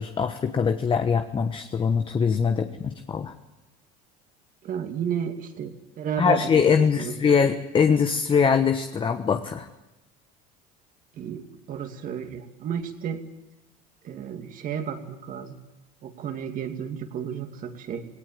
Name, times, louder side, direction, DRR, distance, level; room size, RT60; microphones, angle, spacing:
voice 1, 0.0-3.3 6.2-9.7, left 6 dB, 25° left, 8 dB, 1.2 m, -22 dB
voice 2, 4.6-7.1 11.1-13.2 14.0-15.6 16.0-18.0, right 8 dB, 45° right, 6 dB, 2.5 m, -32 dB
18.0 x 18.0 x 8.9 m, 1.0 s
supercardioid pair, 105°, 18 cm